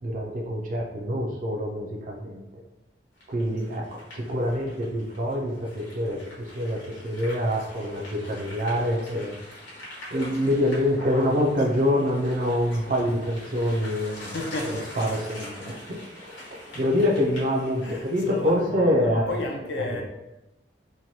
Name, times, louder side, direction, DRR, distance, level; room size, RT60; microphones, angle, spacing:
voice 1, 0.0-2.4 3.3-9.4 10.1-19.5 19.9-20.0, left 1 dB, 45° right, -1 dB, 0.4 m, -26 dB
sound 1, 3.2-18.6, left 1 dB, 85° left, 1.1 m, -43 dB
voice 2, 14.3-14.9 17.8-20.0, left 2 dB, 65° left, 1 dB, 0.5 m, -32 dB
3.0 x 2.2 x 2.7 m, 0.95 s
head